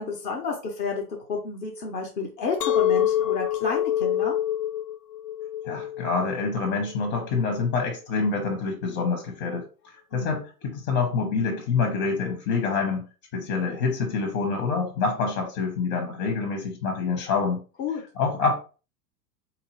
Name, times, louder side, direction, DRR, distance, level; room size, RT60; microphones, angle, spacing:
voice 1, 0.0-4.3 10.1-10.4 17.8-18.0, left 4 dB, 20° left, 0 dB, 0.4 m, -31 dB
Chink clink, 2.6-7.8, left 11 dB, 70° left, 0.7 m, -27 dB
voice 2, 5.6-13.1 13.3-17.6 18.1-18.6, left 4 dB, 45° left, 2 dB, 1.2 m, -26 dB
3.8 x 2.8 x 2.7 m, 0.34 s
figure-of-eight pair, 90°, 49 cm